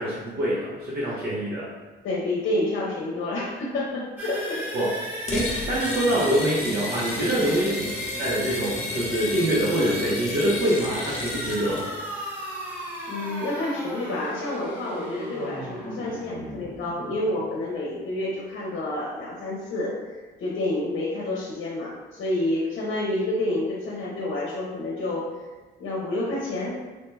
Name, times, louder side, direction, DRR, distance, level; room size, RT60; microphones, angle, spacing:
voice 1, 0.0-1.7 4.7-4.9 5.3-7.9 8.2-11.9, right 1 dB, 50° right, -7 dB, 0.8 m, -25 dB
voice 2, 2.0-4.6 7.3-7.5 13.1-19.9 20.4-25.3 25.8-26.8, left 1 dB, 70° left, -4 dB, 0.7 m, -29 dB
sound 1, 4.2-17.9, equal, 10° right, 1.0 m, -36 dB
sound 2, 5.3-11.9, left 2 dB, 35° left, 0.6 m, -34 dB
2.9 x 2.1 x 3.2 m, 1.2 s
cardioid pair, 90°, 20 cm